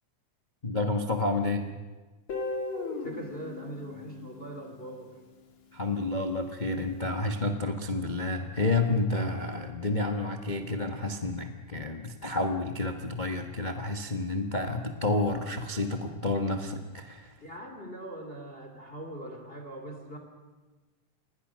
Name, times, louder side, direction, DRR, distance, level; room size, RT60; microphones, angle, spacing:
voice 1, 0.6-1.7 5.7-17.4, left 2 dB, 85° left, 4 dB, 0.4 m, -30 dB
Guitar, 2.3-5.2, left 3 dB, 60° left, 3.6 m, -37 dB
voice 2, 3.0-5.1 17.4-20.2, right 1 dB, 20° left, 3 dB, 2.7 m, -41 dB
28.5 x 21.5 x 6.3 m, 1.3 s
omnidirectional pair, 3.5 m